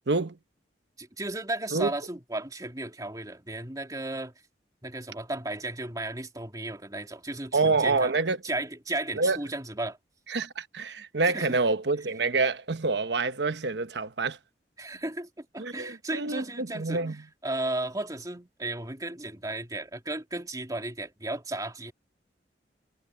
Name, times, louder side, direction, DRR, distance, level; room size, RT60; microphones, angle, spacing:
voice 1, 0.1-0.4 1.7-1.9 7.5-8.4 9.2-9.4 10.3-14.4 15.6-17.2, right 3 dB, 80° right, 1.1 m, -27 dB
voice 2, 1.0-4.3 4.8-8.1 8.4-10.0 11.2-11.6 14.8-17.0 17.4-21.9, right 2 dB, 20° right, 2.8 m, -34 dB
head